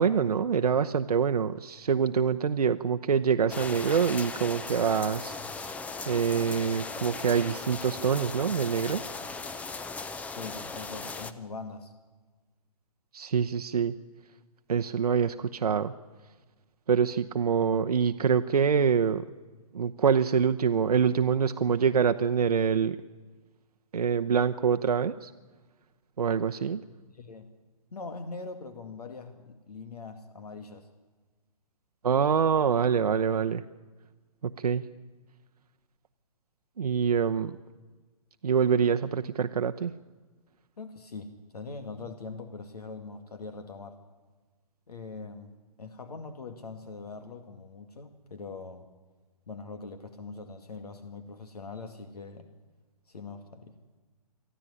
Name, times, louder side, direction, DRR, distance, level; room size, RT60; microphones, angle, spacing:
voice 1, 0.0-5.4 6.1-9.0 13.1-13.9 14.7-15.9 16.9-19.2 19.7-23.0 23.9-25.3 26.2-26.8 32.0-33.6 34.4-34.8 36.8-37.6 38.4-39.9, right 6 dB, 80° right, 7 dB, 0.9 m, -25 dB
sound 1, 3.5-11.3, left 4 dB, 5° left, 0.6 m, -38 dB
voice 2, 10.3-11.9 27.1-27.5 27.9-30.9 40.8-44.0 44.9-45.5 45.8-48.9 49.5-52.5 53.1-53.7, left 4 dB, 80° left, 8 dB, 2.1 m, -42 dB
24.0 x 14.0 x 10.0 m, 1.3 s
hypercardioid pair, 135°, 20 cm